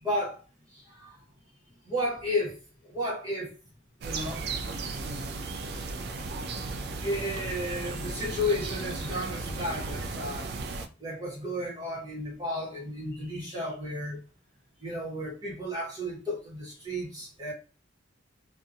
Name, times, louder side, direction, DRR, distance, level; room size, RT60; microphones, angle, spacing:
voice 1, 0.0-0.4 1.0-1.1 1.9-2.5 2.8-3.5 4.0-4.4 7.0-10.5 11.0-14.2 14.8-17.5, left 1 dB, 20° right, 1.0 m, -33 dB
sound 1, 4.0-10.9, right 3 dB, 60° right, 0.3 m, -35 dB
2.7 x 2.2 x 2.4 m
head